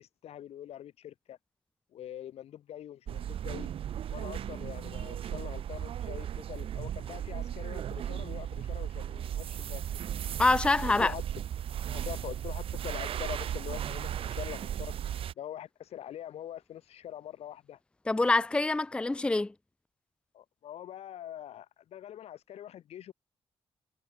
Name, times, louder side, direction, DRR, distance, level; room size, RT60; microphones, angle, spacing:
voice 1, 0.0-1.4 1.9-3.7 4.1-10.0 10.8-11.2 11.9-15.0 15.4-17.8 20.3-23.1, left 11 dB, 85° left, 1.7 m, -44 dB
sound 1, 3.1-15.3, right 10 dB, 60° right, 0.5 m, -36 dB
voice 2, 10.4-11.1 18.1-19.5, left 3 dB, 10° left, 0.5 m, -25 dB
cardioid pair, 120°, 10 cm